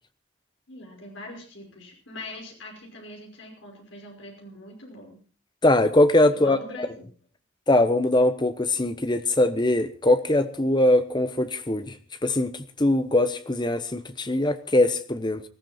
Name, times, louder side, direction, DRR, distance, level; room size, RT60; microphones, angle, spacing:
voice 1, 0.7-5.2 6.3-7.1, left 2 dB, 70° left, 1 dB, 5.6 m, -42 dB
voice 2, 5.6-6.6 7.7-11.9 12.2-12.5 12.8-15.4, left 1 dB, 20° left, 11 dB, 1.0 m, -21 dB
19.5 x 14.0 x 4.4 m, 0.39 s
head